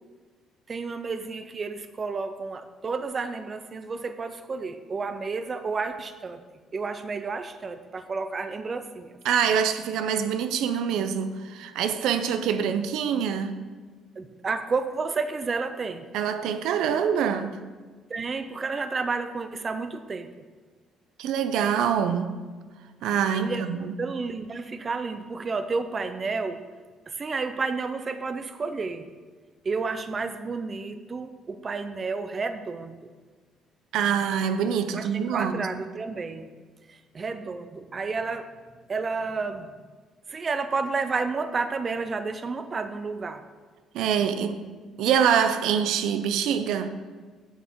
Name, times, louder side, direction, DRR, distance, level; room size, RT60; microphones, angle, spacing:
voice 1, 0.7-6.4 6.7-9.1 14.2-16.1 18.1-20.3 23.4-23.6 24.0-26.6 27.1-29.1 29.6-33.0 34.9-36.5 36.9-38.5 38.9-39.7 40.3-43.4, right 4 dB, 30° right, 0.5 m, -31 dB
voice 2, 9.2-13.6 16.1-17.6 21.2-22.4 23.0-24.0 33.9-35.7 43.9-44.6 45.0-46.9, right 8 dB, 80° right, 0.6 m, -25 dB
9.1 x 6.3 x 4.6 m
cardioid pair, 140°, 0 cm